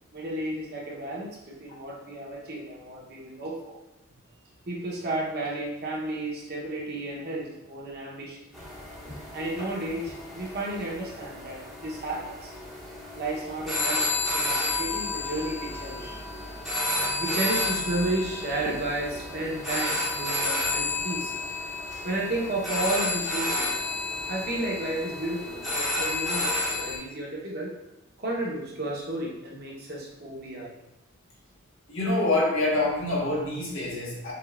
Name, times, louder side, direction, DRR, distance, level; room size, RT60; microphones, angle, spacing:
voice 1, 0.1-3.8 4.7-8.4 9.3-12.5 13.2-16.2 17.2-21.3 22.0-23.8 24.3-27.7 28.2-30.7, right 1 dB, 50° right, -3 dB, 1.0 m, -32 dB
sound 1, 8.5-27.0, left 2 dB, ahead, 1.0 m, -31 dB
voice 2, 31.9-34.3, left 2 dB, 70° left, -5 dB, 1.5 m, -26 dB
5.1 x 3.7 x 2.5 m, 0.88 s
head